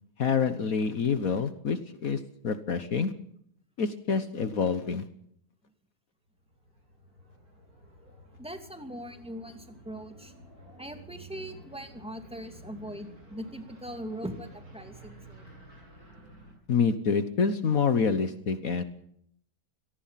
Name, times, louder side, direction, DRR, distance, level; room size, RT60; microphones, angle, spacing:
voice 1, 0.2-3.1 3.8-5.0 16.7-18.8, left 5 dB, 60° left, 11 dB, 1.6 m, -27 dB
sound 1, 6.3-16.5, right 1 dB, 65° right, 7.8 m, -51 dB
voice 2, 8.4-10.3 10.8-15.4, equal, 5° right, 6 dB, 2.6 m, -41 dB
25.0 x 18.5 x 5.9 m, 0.68 s
omnidirectional pair, 1.7 m